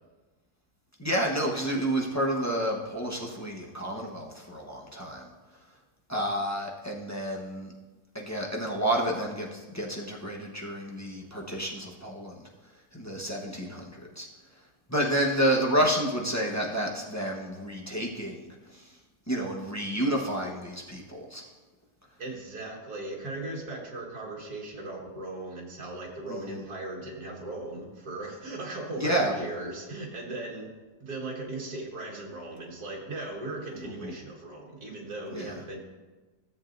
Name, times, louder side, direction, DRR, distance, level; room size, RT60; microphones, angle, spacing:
voice 1, 1.0-5.3 6.1-7.7 8.1-12.3 12.9-14.3 14.9-18.9 19.3-21.4 26.3-26.6 29.0-29.4 33.8-34.1 35.3-35.5, right 1 dB, 15° left, -2 dB, 0.7 m, -30 dB
voice 2, 22.2-30.7 31.0-35.8, right 2 dB, 65° right, -1 dB, 2.1 m, -38 dB
14.0 x 7.5 x 2.6 m, 1.2 s
omnidirectional pair, 1.8 m